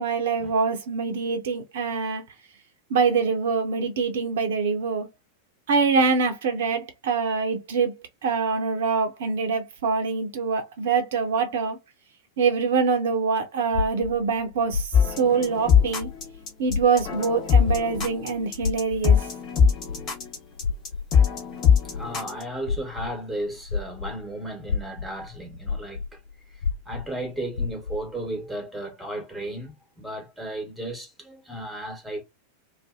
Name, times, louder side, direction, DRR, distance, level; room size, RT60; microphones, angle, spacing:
voice 1, 0.0-2.2 2.9-5.1 5.7-11.8 12.4-16.1 16.6-19.3, right 5 dB, 60° right, 0.5 m, -24 dB
sound 1, 13.7-16.4 16.7-24.2 24.6-28.1, left 5 dB, 70° left, 0.4 m, -30 dB
sound 2, 14.9-22.4, left 7 dB, 35° left, 1.1 m, -22 dB
voice 2, 21.8-26.2 26.5-32.2, right 1 dB, ahead, 1.1 m, -34 dB
2.5 x 2.1 x 2.3 m
figure-of-eight pair, 90°, 0 cm